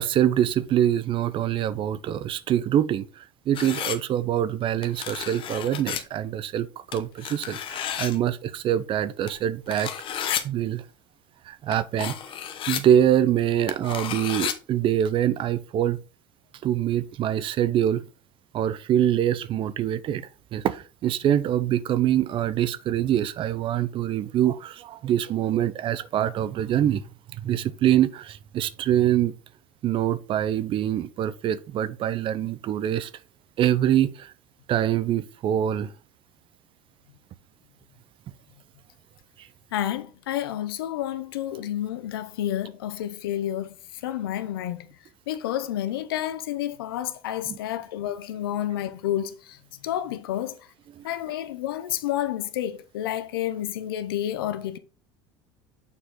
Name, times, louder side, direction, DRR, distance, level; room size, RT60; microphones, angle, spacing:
voice 1, 0.0-9.9 10.4-10.8 11.5-12.1 12.7-16.0 16.6-18.0 18.5-27.0 27.3-29.4 29.8-33.1 33.6-34.3 34.7-35.9 47.5-47.6 51.0-51.1, right 11 dB, 45° right, 0.6 m, -24 dB
sound 1, 3.5-4.0 4.8-6.0 6.9-8.2 9.3-9.4 9.7-10.4 11.7-11.8 12.0-12.8 13.7-14.5, left 9 dB, 45° left, 1.0 m, -31 dB
voice 2, 39.7-44.9 45.3-50.7 51.0-54.8, left 12 dB, 90° left, 0.7 m, -30 dB
7.0 x 4.5 x 3.8 m
supercardioid pair, 90°, 12 cm